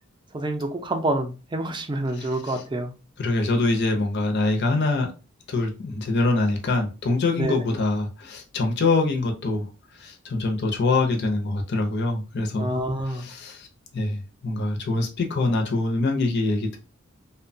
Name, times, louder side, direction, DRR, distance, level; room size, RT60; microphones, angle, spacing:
voice 1, 0.3-2.9 7.4-7.6 12.6-13.2, right 1 dB, 25° right, 0.4 m, -27 dB
voice 2, 2.1-2.6 3.2-5.1 5.5-9.7 10.0-12.7 13.1-13.7 13.9-16.8, left 2 dB, 55° left, 0.6 m, -24 dB
2.8 x 2.1 x 2.6 m
head